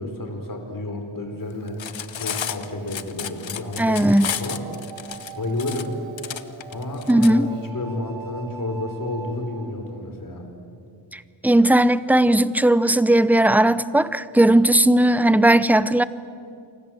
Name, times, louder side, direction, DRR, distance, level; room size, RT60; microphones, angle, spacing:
voice 1, 0.0-4.6 5.4-5.9 6.7-10.4, left 2 dB, 45° left, 4 dB, 4.5 m, -31 dB
Cutlery silverware, 1.7-7.3, left 8 dB, 85° left, 1.1 m, -32 dB
sound 1, 2.4-10.0, right 7 dB, 80° right, 1.8 m, -43 dB
voice 2, 3.8-4.3 7.1-7.5 11.1-16.0, right 1 dB, 5° right, 15 dB, 0.7 m, -17 dB
28.5 x 25.0 x 7.8 m, 2.4 s
wide cardioid pair, 115°, 45 cm